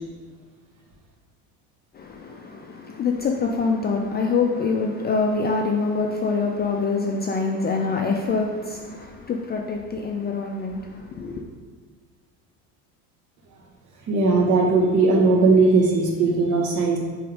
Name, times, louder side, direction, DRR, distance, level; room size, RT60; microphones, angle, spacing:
voice 1, 1.9-11.4, left 4 dB, 25° left, 1 dB, 0.4 m, -25 dB
voice 2, 14.1-17.0, right 3 dB, 45° right, -1 dB, 1.6 m, -18 dB
8.4 x 3.5 x 3.6 m, 1.5 s
supercardioid pair, 120°, 42 cm